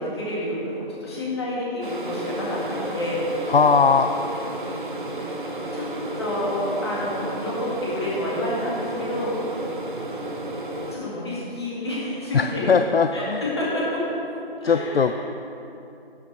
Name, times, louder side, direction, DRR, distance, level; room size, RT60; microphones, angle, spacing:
voice 1, 0.0-3.2 5.7-5.9 6.2-9.4 10.9-12.6 13.1-14.2 14.6-15.2, left 1 dB, 25° left, -6 dB, 2.1 m, -29 dB
sound 1, 1.8-11.0, right 1 dB, 50° right, 1.1 m, -32 dB
voice 2, 3.5-4.1 12.3-13.4 14.6-15.2, left 5 dB, 70° left, 8 dB, 0.5 m, -19 dB
11.5 x 8.9 x 3.3 m, 2.7 s
figure-of-eight pair, 165°, 31 cm